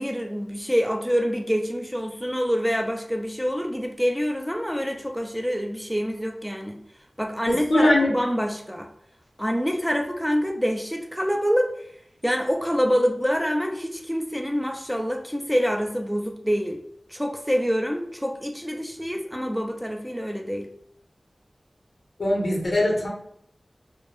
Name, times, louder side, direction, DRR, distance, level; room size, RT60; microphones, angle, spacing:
voice 1, 0.0-6.8 7.2-8.9 9.4-11.7 12.2-16.8 17.1-20.7, equal, ahead, 3 dB, 0.3 m, -26 dB
voice 2, 7.5-8.1 22.2-23.1, left 1 dB, 80° left, -2 dB, 0.7 m, -21 dB
2.2 x 2.1 x 2.9 m, 0.70 s
wide cardioid pair, 60°, 0 cm